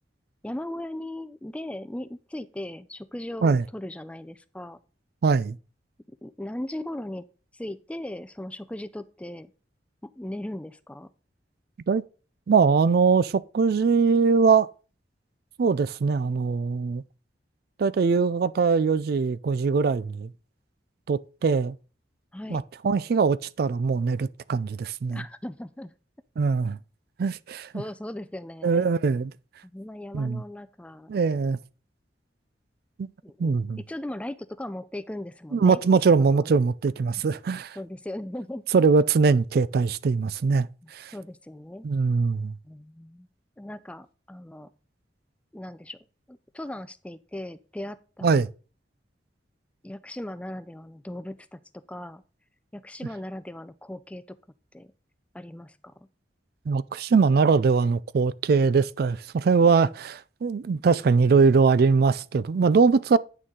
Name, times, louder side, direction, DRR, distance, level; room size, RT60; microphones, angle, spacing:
voice 1, 0.4-4.8 6.2-7.3 7.5-9.5 10.0-11.1 22.3-22.6 25.1-25.9 27.7-28.9 29.6-31.1 33.2-33.6 33.9-35.8 36.2-36.5 37.5-38.6 41.1-41.9 42.6-43.3 43.6-44.7 45.5-46.0 46.3-48.4 49.8-52.2 52.7-54.4 54.7-54.9 55.3-56.1, left 1 dB, 5° left, 0.4 m, -38 dB
voice 2, 5.2-5.6 11.9-12.0 12.5-14.7 15.6-17.0 17.8-20.3 21.1-21.8 22.5-25.2 26.4-26.8 27.2-27.7 28.6-29.3 30.1-30.4 31.1-31.6 33.0-33.1 33.4-33.8 35.5-37.8 38.7-41.1 41.8-42.5 48.2-48.5 56.7-63.2, right 5 dB, 55° right, 0.4 m, -22 dB
9.3 x 6.5 x 3.7 m
head